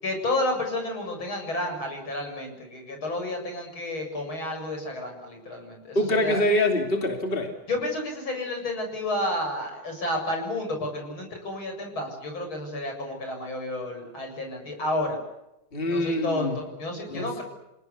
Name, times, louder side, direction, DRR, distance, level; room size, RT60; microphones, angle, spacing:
voice 1, 0.0-6.4 7.7-15.2 15.8-17.4, left 1 dB, 70° left, 4 dB, 8.3 m, -31 dB
voice 2, 5.9-7.5 15.7-16.6 17.1-17.4, left 1 dB, 25° left, 3 dB, 3.0 m, -25 dB
29.5 x 18.5 x 8.4 m, 0.91 s
omnidirectional pair, 2.3 m